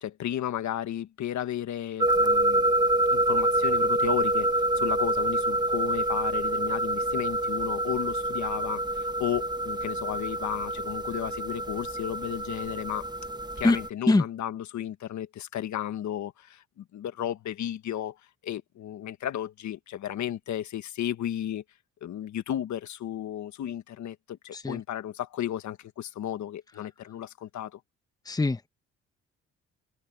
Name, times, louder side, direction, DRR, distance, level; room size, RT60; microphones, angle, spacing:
voice 1, 0.0-2.7 3.1-13.1 13.6-18.2 18.4-21.6 22.0-27.8, left 11 dB, 70° left, 1.5 m, -34 dB
sound 1, 2.0-13.9, right 1 dB, 15° right, 1.1 m, -27 dB
voice 2, 13.6-14.2 24.5-24.8 28.2-28.7, left 2 dB, 10° left, 1.0 m, -24 dB
open air
cardioid pair, 90°, 30 cm